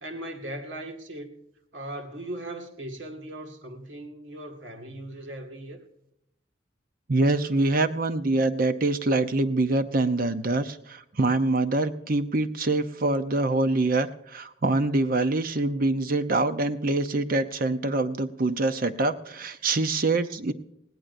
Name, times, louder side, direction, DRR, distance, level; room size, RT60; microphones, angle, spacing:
voice 1, 0.0-1.4 1.7-5.8, right 1 dB, 75° right, 3 dB, 2.0 m, -38 dB
voice 2, 7.1-20.5, right 2 dB, 45° right, 10 dB, 0.7 m, -25 dB
20.0 x 17.0 x 2.7 m, 0.79 s
head